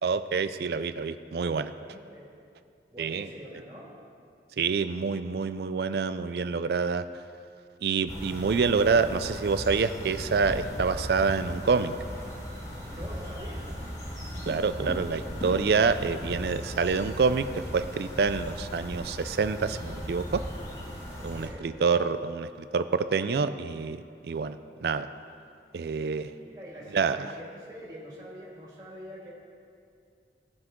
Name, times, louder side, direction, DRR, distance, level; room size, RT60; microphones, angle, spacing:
voice 1, 0.0-1.7 3.0-3.3 4.6-7.0 7.8-11.9 14.5-20.4 21.2-24.6 24.8-25.1 25.7-26.3 26.9-27.2, right 5 dB, 65° right, 12 dB, 0.4 m, -27 dB
voice 2, 1.8-2.3 2.9-3.9 12.9-13.7 21.2-21.7 26.3-29.3, equal, 20° right, -6 dB, 2.0 m, -45 dB
sound 1, 8.1-21.5, equal, 40° left, 2.4 m, -37 dB
17.0 x 6.0 x 3.7 m, 2.4 s
head